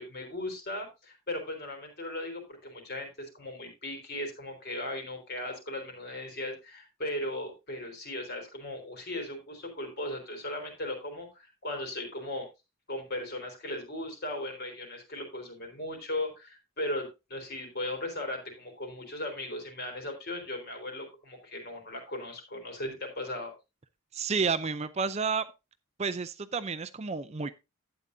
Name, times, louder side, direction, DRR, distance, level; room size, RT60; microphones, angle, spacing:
voice 1, 0.0-12.4 12.9-23.5, left 1 dB, 45° left, 3.7 m, -37 dB
voice 2, 24.1-25.5 26.0-27.5, right 5 dB, 30° right, 0.4 m, -30 dB
12.0 x 8.9 x 2.6 m
head